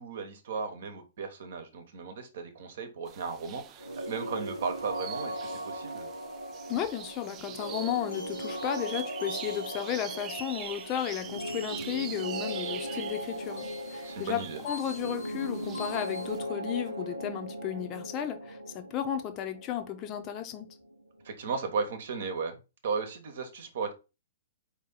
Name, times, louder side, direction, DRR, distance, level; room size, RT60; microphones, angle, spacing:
voice 1, 0.0-6.1 14.0-14.6 21.2-23.9, right 5 dB, 60° right, 1.1 m, -35 dB
sound 1, 3.1-16.4, right 10 dB, 25° right, 0.3 m, -45 dB
sound 2, 3.8-21.4, right 1 dB, 85° right, 0.6 m, -38 dB
voice 2, 6.7-20.7, left 10 dB, 30° left, 0.7 m, -34 dB
sound 3, 7.6-16.3, left 4 dB, 75° left, 0.5 m, -47 dB
4.5 x 2.9 x 3.9 m
figure-of-eight pair, 115°, 0 cm